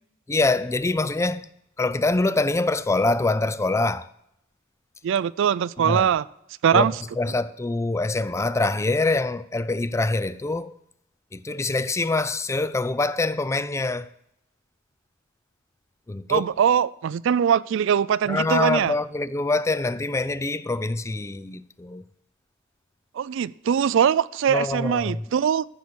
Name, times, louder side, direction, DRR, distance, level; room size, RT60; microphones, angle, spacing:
voice 1, 0.3-1.5 1.8-4.1 5.8-6.1 6.7-6.9 7.2-10.8 11.3-14.1 16.1-16.5 18.3-22.0 24.5-25.2, left 2 dB, 15° left, 0.3 m, -24 dB
voice 2, 5.0-6.3 6.6-6.9 16.3-18.9 23.2-25.6, right 8 dB, 65° right, 0.3 m, -22 dB
14.5 x 6.9 x 6.3 m
head